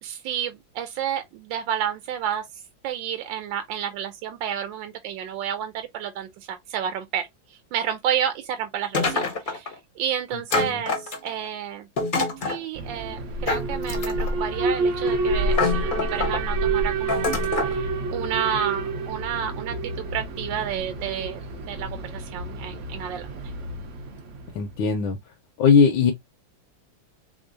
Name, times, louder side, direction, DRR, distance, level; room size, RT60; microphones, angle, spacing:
voice 1, 0.0-11.9 12.5-21.4 21.7-23.3, right 9 dB, 75° right, 1.2 m, -30 dB
sound 1, 8.9-9.7 10.5-11.5 12.0-12.6 13.5-14.4 15.1-15.2 15.5-16.4 17.1-17.8, left 4 dB, 50° left, 0.6 m, -26 dB
Alarm, 12.7-24.8, right 3 dB, 60° right, 0.8 m, -28 dB
voice 2, 24.5-25.2 25.6-26.1, left 6 dB, 85° left, 1.4 m, -19 dB
3.6 x 3.6 x 2.5 m
omnidirectional pair, 2.1 m